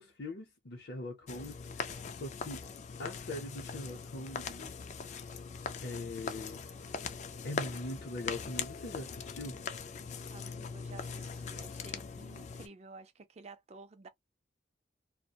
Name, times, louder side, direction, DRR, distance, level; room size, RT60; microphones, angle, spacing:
voice 1, 0.0-2.6 3.0-4.7 5.8-6.6 7.4-9.6, left 2 dB, 60° left, 0.7 m, -42 dB
sound 1, 1.3-12.7, left 5 dB, 40° left, 0.3 m, -41 dB
voice 2, 10.3-14.1, right 3 dB, 35° right, 0.4 m, -52 dB
2.3 x 2.1 x 2.7 m
head